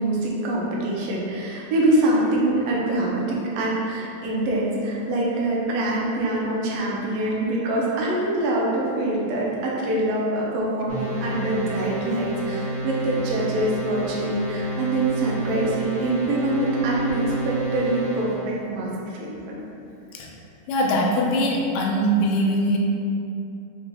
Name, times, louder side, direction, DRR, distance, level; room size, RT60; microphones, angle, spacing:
voice 1, 0.0-19.6, right 1 dB, 75° right, -4 dB, 1.4 m, -24 dB
sound 1, 10.9-18.4, right 1 dB, 40° right, 0.9 m, -30 dB
voice 2, 20.7-22.8, equal, 90° left, -1 dB, 2.0 m, -22 dB
5.3 x 2.8 x 2.2 m, 2.7 s
omnidirectional pair, 3.4 m